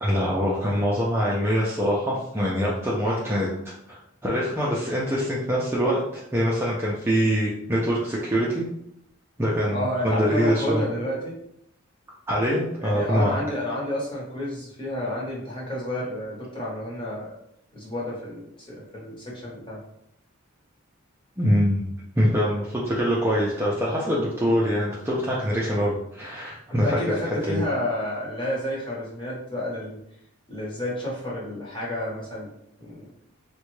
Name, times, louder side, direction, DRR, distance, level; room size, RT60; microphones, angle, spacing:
voice 1, 0.0-3.5 3.9-8.7 9.4-10.8 12.3-13.3 21.4-21.9 22.2-27.0 27.5-27.6, equal, 10° right, -5 dB, 0.4 m, -24 dB
voice 2, 9.7-11.4 12.8-17.3 17.7-19.8 26.7-30.0 30.5-32.5 32.8-33.1, left 1 dB, 25° left, -5 dB, 0.8 m, -30 dB
3.4 x 2.1 x 3.1 m, 0.76 s
head